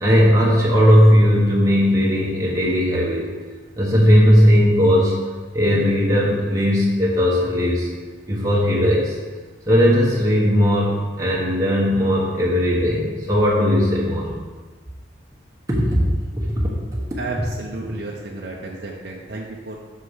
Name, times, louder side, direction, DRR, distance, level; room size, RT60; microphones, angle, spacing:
voice 1, 0.0-3.3 3.8-5.2 5.5-7.9 8.3-9.2 9.7-14.3 15.7-16.0 16.4-16.7, equal, 15° right, -5 dB, 1.2 m, -17 dB
voice 2, 17.2-19.8, right 3 dB, 55° right, -2 dB, 0.9 m, -32 dB
6.3 x 5.7 x 5.7 m, 1.4 s
head